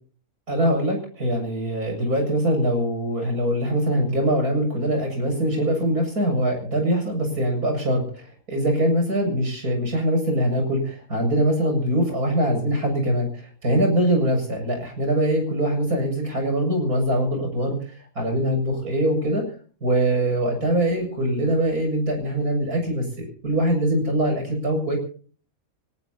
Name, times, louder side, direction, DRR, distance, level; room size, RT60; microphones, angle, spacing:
voice 1, 0.5-19.4 19.8-25.0, right 1 dB, 90° right, 3 dB, 8.2 m, -23 dB
25.5 x 18.5 x 2.9 m, 0.43 s
omnidirectional pair, 1.5 m